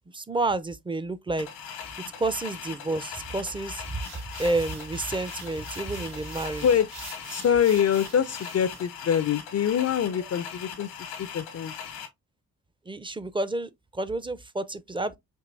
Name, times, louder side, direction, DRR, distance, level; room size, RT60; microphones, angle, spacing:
voice 1, 0.1-1.5 2.2-4.0 4.4-6.6 12.9-15.2, right 2 dB, 10° right, 0.5 m, -30 dB
sound 1, 1.4-12.1, left 8 dB, 85° left, 1.1 m, -40 dB
sound 2, 3.8-8.9, right 3 dB, 80° right, 2.8 m, -46 dB
voice 2, 7.3-10.9 11.2-11.7, left 8 dB, 40° left, 0.4 m, -24 dB
4.5 x 2.8 x 2.6 m
hypercardioid pair, 45°, 41 cm